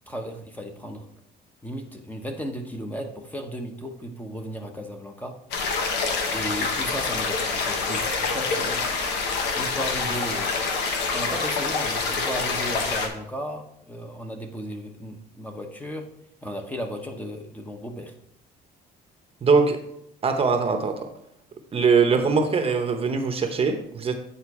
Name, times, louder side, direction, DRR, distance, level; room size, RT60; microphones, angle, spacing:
voice 1, 0.1-1.1 1.6-5.4 6.3-8.9 9.5-10.5 11.1-16.1 16.4-18.1, equal, 10° left, 4 dB, 0.9 m, -35 dB
sound 1, 5.5-13.1, left 4 dB, 85° left, 1.2 m, -26 dB
voice 2, 19.4-19.8 20.2-21.1 21.7-24.2, right 5 dB, 35° right, 6 dB, 0.8 m, -21 dB
8.9 x 4.0 x 4.8 m, 0.75 s
cardioid pair, 110°, 17 cm